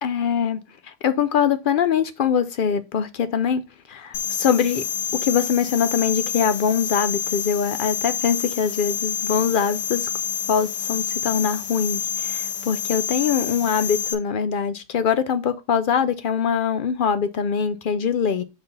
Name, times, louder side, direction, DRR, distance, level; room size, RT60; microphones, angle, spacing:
voice 1, 0.0-3.6 3.9-4.8 5.2-10.1 10.5-18.4, left 7 dB, 65° left, 0.5 m, -23 dB
sound 1, 4.1-14.1, left 8 dB, 90° left, 1.3 m, -28 dB
5.5 x 4.1 x 5.4 m
omnidirectional pair, 1.4 m